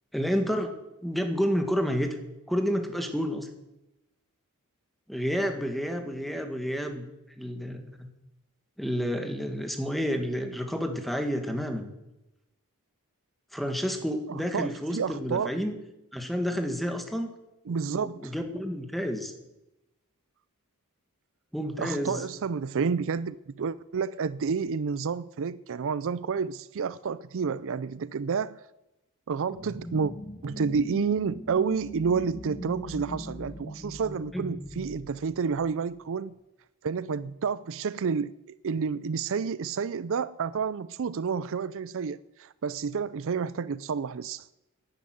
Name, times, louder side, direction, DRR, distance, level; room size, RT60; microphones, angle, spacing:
voice 1, 0.1-0.8 1.0-2.2 2.5-3.5 5.1-7.1 7.4-8.1 8.8-11.9 13.5-15.8 16.1-17.3 17.9-19.3 21.5-22.2 34.3-34.5, equal, ahead, 1.9 m, -30 dB
voice 2, 14.3-15.6 17.7-18.3 21.8-28.6 29.3-30.1 30.4-36.3 36.8-44.5, right 5 dB, 60° right, 0.5 m, -30 dB
sound 1, 29.5-36.0, equal, 20° left, 1.5 m, -41 dB
12.5 x 11.0 x 9.4 m
head